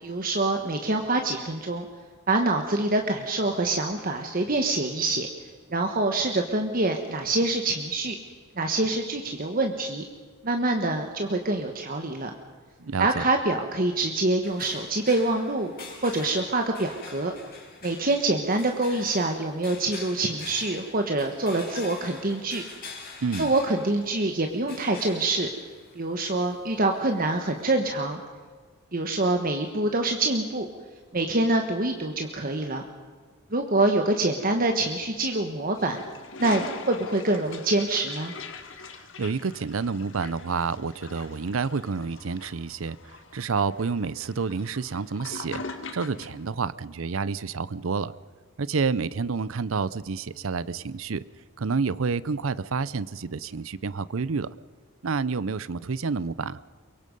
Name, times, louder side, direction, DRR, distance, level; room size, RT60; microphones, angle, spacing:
voice 1, 0.0-1.9 2.3-5.3 5.7-8.1 8.6-10.0 10.4-12.3 13.0-15.7 16.0-17.3 17.8-22.6 23.4-25.5 25.9-28.2 28.9-30.7 31.1-32.8 33.5-36.0 36.4-38.3, right 2 dB, 45° right, 4 dB, 1.3 m, -25 dB
voice 2, 12.8-13.2 23.2-23.5 39.2-48.1 48.6-51.2 51.6-54.5 55.0-56.6, right 5 dB, 75° right, 18 dB, 0.6 m, -29 dB
sound 1, 14.4-27.6, left 4 dB, 45° left, 5.5 m, -45 dB
Toilet flush, 35.8-46.4, left 4 dB, 60° left, 1.7 m, -42 dB
23.5 x 23.0 x 5.4 m, 1.5 s
head